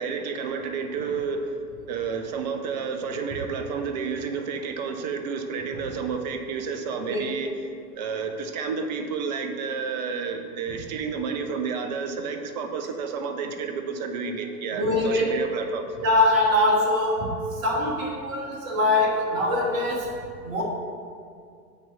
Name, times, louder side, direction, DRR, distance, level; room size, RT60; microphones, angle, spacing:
voice 1, 0.0-1.6 1.9-7.5 7.9-15.8, right 5 dB, 30° right, 6 dB, 0.4 m, -30 dB
voice 2, 14.7-15.4 16.0-17.3 17.6-20.1 20.4-20.6, left 1 dB, 55° right, -2 dB, 1.4 m, -23 dB
7.4 x 2.9 x 5.5 m, 2.3 s
figure-of-eight pair, 100°, 47 cm